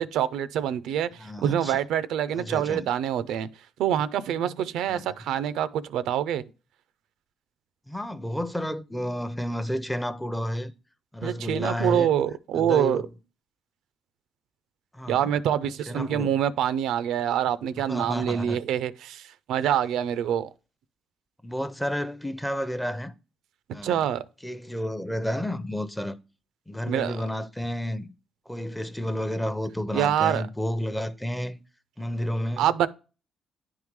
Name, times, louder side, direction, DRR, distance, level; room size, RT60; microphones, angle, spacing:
voice 1, 0.0-1.1 1.4-3.5 3.8-6.4 11.2-13.0 15.1-19.2 19.5-20.5 23.8-24.2 26.9-27.2 29.9-30.4 32.6-32.9, right 10 dB, 85° right, 0.4 m, -25 dB
voice 2, 1.2-1.8 2.4-2.9 4.9-5.2 7.9-10.7 11.1-12.1 12.5-13.1 14.9-15.3 15.9-16.3 17.9-18.6 21.4-23.1 23.7-24.0 24.4-26.2 26.7-28.1 28.5-31.6 32.0-32.7, equal, 5° left, 0.5 m, -31 dB
10.0 x 3.6 x 3.1 m
cardioid pair, 90°, 0 cm